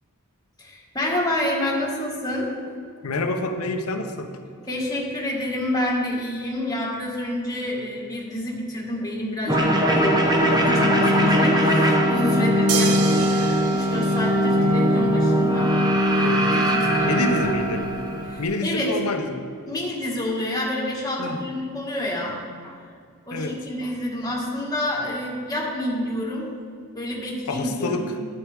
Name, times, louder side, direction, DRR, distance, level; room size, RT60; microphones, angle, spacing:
voice 1, 0.6-2.5 4.7-15.7 16.1-17.5 18.3-18.9 19.7-22.4 22.6-22.8 23.2-26.5 26.9-28.1, left 1 dB, 15° left, -3 dB, 1.8 m, -28 dB
voice 2, 3.0-4.3 16.2-16.5 17.0-17.8 18.4-19.5 21.2-21.4 23.3-23.6 27.5-28.1, left 2 dB, 75° left, 6 dB, 0.7 m, -27 dB
sound 1, 9.5-18.4, equal, 20° right, 0.9 m, -20 dB
sound 2, 12.7-15.2 16.9-17.0, right 6 dB, 80° right, 0.7 m, -30 dB
11.0 x 8.9 x 3.5 m, 2.1 s
head